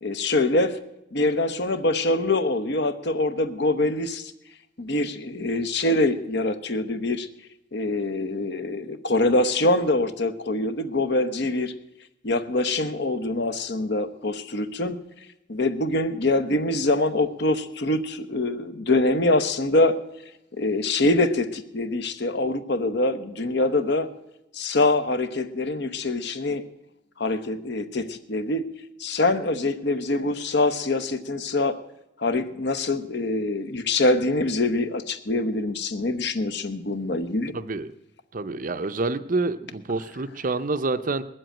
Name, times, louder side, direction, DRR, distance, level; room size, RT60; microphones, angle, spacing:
voice 1, 0.0-0.8 1.1-4.3 4.8-7.3 7.7-11.7 12.2-15.0 15.5-20.0 20.5-24.1 24.5-26.6 27.2-28.6 29.0-31.8 32.2-37.5, left 2 dB, 55° left, 10 dB, 1.0 m, -24 dB
voice 2, 37.5-37.9 38.3-41.2, right 3 dB, 40° right, 12 dB, 0.6 m, -27 dB
19.5 x 7.8 x 8.9 m, 0.88 s
head